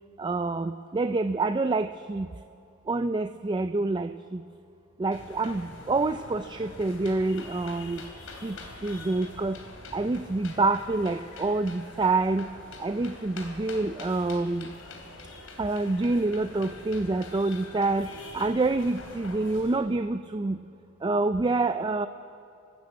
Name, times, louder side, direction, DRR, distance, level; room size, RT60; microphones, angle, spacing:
voice 1, 0.2-2.3 2.9-4.4 5.0-8.0 8.4-8.6 8.8-9.6 9.9-12.5 12.8-14.7 15.6-18.1 18.3-20.6 21.0-22.1, right 3 dB, 20° right, 10 dB, 0.4 m, -27 dB
sound 1, 5.1-19.8, left 2 dB, 90° left, 3.3 m, -44 dB
28.5 x 12.5 x 8.4 m, 2.6 s
head